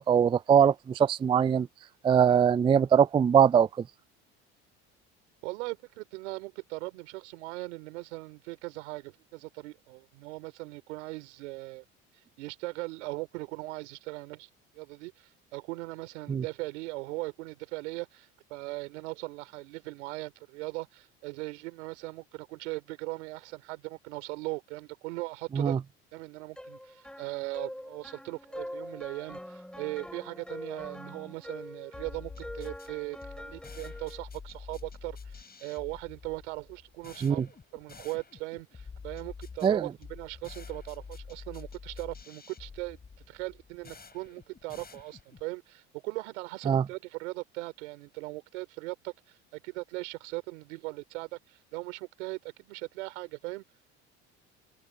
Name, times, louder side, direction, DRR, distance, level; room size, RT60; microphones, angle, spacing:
voice 1, 0.0-1.7 2.0-3.7 16.3-16.4 25.5-25.8 37.2-37.5 39.6-39.9 46.7-46.8, right 8 dB, 15° right, 0.3 m, -22 dB
voice 2, 5.4-11.8 12.4-25.8 26.1-37.4 37.7-43.0 43.3-53.6, right 23 dB, 85° right, 3.5 m, -39 dB
sound 1, 26.6-34.2, equal, 5° left, 6.2 m, -44 dB
sound 2, 31.9-45.5, left 5 dB, 25° left, 7.7 m, -47 dB
hypercardioid pair, 80°, 34 cm